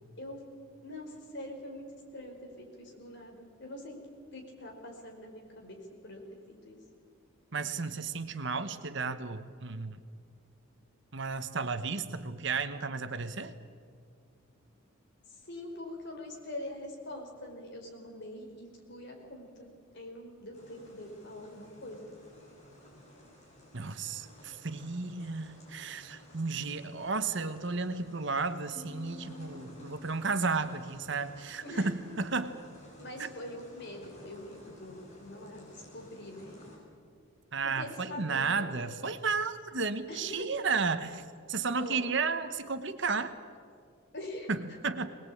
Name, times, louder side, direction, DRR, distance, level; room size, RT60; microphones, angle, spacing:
voice 1, 0.8-4.0 4.3-6.4 6.6-6.8 15.3-22.1 31.6-31.9 33.0-36.6 37.6-38.7 40.1-40.5 41.8-42.0 44.1-44.5, left 1 dB, 55° left, 1 dB, 5.0 m, -44 dB
voice 2, 7.5-10.0 11.1-13.5 23.7-32.5 33.2-33.3 37.5-41.2 41.5-43.3 44.5-45.1, right 4 dB, 60° right, 10 dB, 1.2 m, -33 dB
sound 1, 20.5-36.8, left 1 dB, 35° left, 6.9 m, -54 dB
Piano, 28.8-32.2, left 4 dB, 80° left, 2.9 m, -53 dB
22.5 x 20.5 x 8.6 m, 2.1 s
head